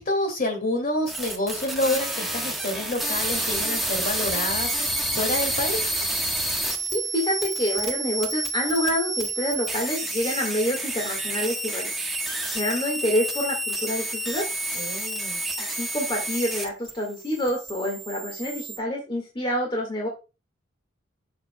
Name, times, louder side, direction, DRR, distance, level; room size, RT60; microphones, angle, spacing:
voice 1, 0.0-5.9 14.7-15.4, left 1 dB, 50° left, 3 dB, 2.5 m, -28 dB
sound 1, 1.1-16.9 17.2-18.8, right 1 dB, ahead, 1.3 m, -29 dB
voice 2, 6.9-11.9 12.5-14.5 15.6-20.1, left 1 dB, 25° left, 0 dB, 1.9 m, -27 dB
7.7 x 6.6 x 2.3 m, 0.29 s
head